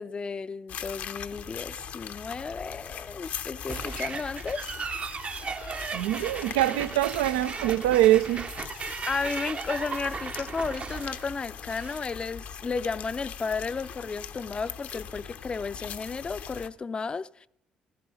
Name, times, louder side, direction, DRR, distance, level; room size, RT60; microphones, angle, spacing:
voice 1, 0.0-4.7 9.0-17.5, left 4 dB, 35° left, 0.4 m, -33 dB
sound 1, 0.7-16.7, left 8 dB, 65° left, 0.7 m, -41 dB
sound 2, 3.7-12.0, right 5 dB, 45° right, 0.7 m, -36 dB
voice 2, 5.9-8.4, right 14 dB, 85° right, 0.4 m, -23 dB
15.0 x 14.0 x 4.9 m
hypercardioid pair, 50°, 3 cm